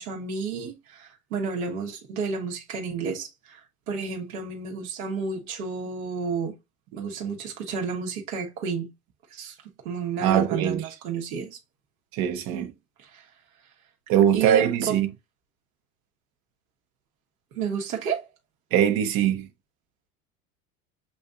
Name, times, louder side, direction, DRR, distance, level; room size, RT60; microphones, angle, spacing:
voice 1, 0.0-6.5 6.9-8.9 9.3-9.5 9.8-11.6 12.5-12.7 13.0-13.2 14.3-14.9 17.5-18.3, right 5 dB, 80° right, 1.5 m, -31 dB
voice 2, 10.2-10.8 12.1-12.7 14.1-15.1 18.7-19.5, right 10 dB, 60° right, 1.1 m, -22 dB
7.6 x 2.7 x 2.4 m
hypercardioid pair, 80°, 40 cm